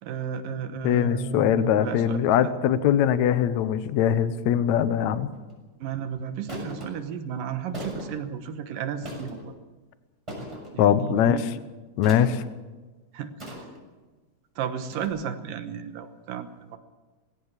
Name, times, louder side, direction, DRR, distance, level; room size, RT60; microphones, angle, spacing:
voice 1, 0.0-1.5 1.8-2.6 5.8-9.5 10.7-11.4 13.1-13.3 14.6-16.8, right 7 dB, 70° right, 8 dB, 2.5 m, -33 dB
voice 2, 0.8-5.3 10.8-11.4 12.0-12.4, left 9 dB, 85° left, 13 dB, 1.6 m, -22 dB
sound 1, 5.3-5.5 6.5-6.9 7.7-8.2 9.0-9.5 10.3-10.7 12.0-12.4 13.4-13.9 14.9-15.1, equal, 5° right, 6.2 m, -38 dB
21.5 x 16.5 x 7.4 m, 1.2 s
omnidirectional pair, 4.7 m